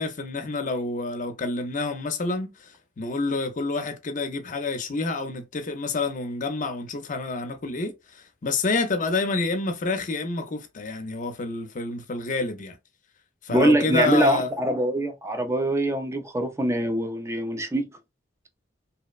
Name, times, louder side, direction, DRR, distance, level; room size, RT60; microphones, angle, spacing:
voice 1, 0.0-12.8 13.4-14.5, left 3 dB, 45° left, 0.6 m, -28 dB
voice 2, 13.5-17.9, right 1 dB, 15° right, 0.4 m, -23 dB
2.8 x 2.0 x 2.4 m
head